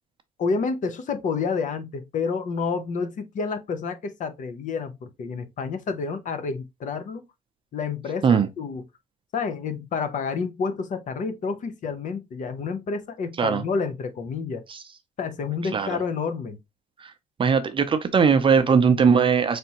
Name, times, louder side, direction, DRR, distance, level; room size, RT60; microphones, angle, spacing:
voice 1, 0.4-7.3 7.7-8.8 9.3-14.6 15.2-16.6, left 5 dB, 50° left, 0.8 m, -29 dB
voice 2, 17.4-19.6, right 6 dB, 30° right, 0.6 m, -20 dB
4.2 x 3.4 x 2.9 m
cardioid pair, 110°, 17 cm